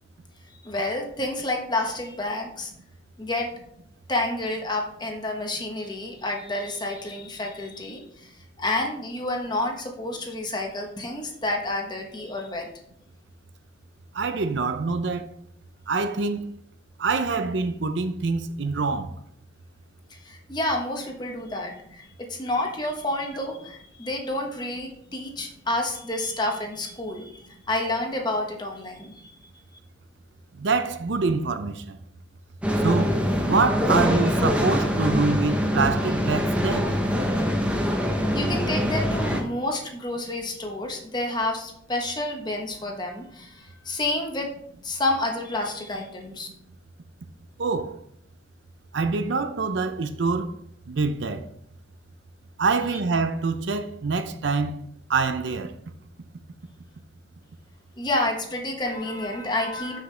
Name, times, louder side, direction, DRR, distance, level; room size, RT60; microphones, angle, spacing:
voice 1, 0.6-2.7 3.2-3.5 4.1-8.3 8.6-12.7 20.2-27.4 27.7-29.4 38.3-44.5 44.8-46.5 58.0-60.0, left 2 dB, 20° left, 1.1 m, -29 dB
voice 2, 14.1-15.3 15.9-16.5 17.0-19.1 30.5-32.0 32.8-33.2 33.5-36.9 47.6-48.0 48.9-50.6 50.9-51.5 52.6-54.8 55.1-55.7, right 4 dB, 65° right, 0.6 m, -25 dB
sound 1, 32.6-39.4, equal, 5° right, 0.9 m, -24 dB
7.1 x 6.6 x 3.3 m
head